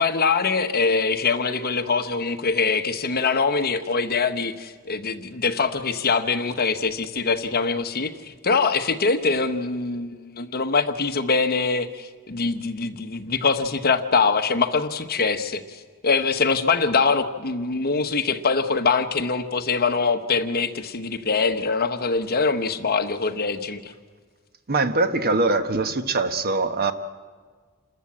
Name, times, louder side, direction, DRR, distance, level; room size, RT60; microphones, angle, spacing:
voice 1, 0.0-15.8 16.0-23.8, left 4 dB, 45° left, 1.1 m, -23 dB
voice 2, 24.7-26.9, right 3 dB, 45° right, 1.1 m, -22 dB
28.0 x 13.5 x 8.6 m
head